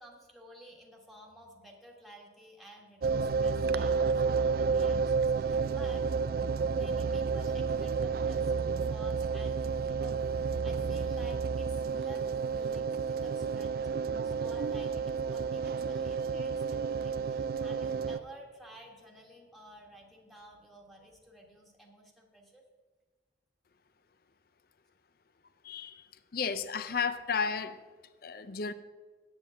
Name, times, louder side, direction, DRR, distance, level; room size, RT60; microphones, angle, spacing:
voice 1, 0.0-6.0 6.7-10.1 10.6-13.8 14.2-22.6, right 1 dB, ahead, -1 dB, 1.3 m, -53 dB
sound 1, 3.0-18.2, right 5 dB, 55° right, 0.3 m, -31 dB
voice 2, 25.6-26.1 26.3-27.8 28.2-28.7, left 5 dB, 55° left, 13 dB, 0.5 m, -33 dB
7.9 x 7.5 x 8.5 m, 1.4 s
head